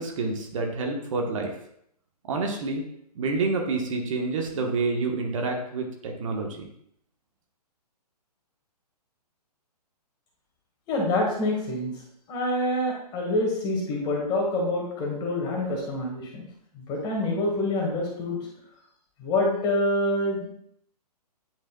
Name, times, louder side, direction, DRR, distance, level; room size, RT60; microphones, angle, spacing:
voice 1, 0.0-1.5 2.3-2.8 3.1-6.7, right 3 dB, 50° right, 2 dB, 1.2 m, -28 dB
voice 2, 10.9-12.0 12.3-16.4 16.9-18.4 19.2-20.4, left 1 dB, 20° left, -1 dB, 1.7 m, -26 dB
9.1 x 5.4 x 2.3 m, 0.69 s
hypercardioid pair, 140°, 21 cm